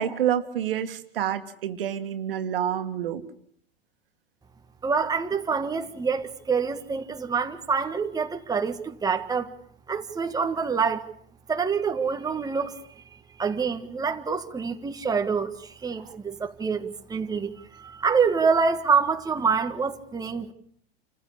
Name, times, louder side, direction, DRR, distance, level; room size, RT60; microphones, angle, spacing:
voice 1, 0.0-3.2 16.0-16.1, right 10 dB, 70° right, 2.1 m, -28 dB
voice 2, 4.8-9.5 9.9-11.1 11.5-12.8 13.4-20.5, right 5 dB, 15° right, 1.7 m, -26 dB
28.0 x 15.0 x 8.6 m
hypercardioid pair, 95°, 29 cm